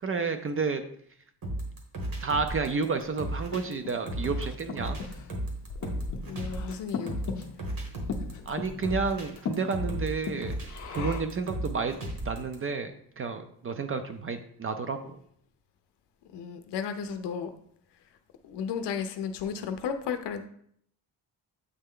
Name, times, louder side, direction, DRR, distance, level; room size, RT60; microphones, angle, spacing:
voice 1, 0.0-0.8 2.2-5.0 8.5-10.6 11.0-12.0 12.2-15.2, right 4 dB, 35° right, 8 dB, 0.4 m, -31 dB
sound 1, 1.4-12.5, right 1 dB, 55° right, 1.3 m, -35 dB
Breathing, 2.9-11.5, left 5 dB, 45° left, 0.7 m, -39 dB
voice 2, 6.2-7.2 16.3-17.5 18.4-20.5, left 7 dB, 90° left, 8 dB, 0.6 m, -33 dB
7.9 x 3.2 x 3.6 m, 0.66 s
wide cardioid pair, 145°, 40 cm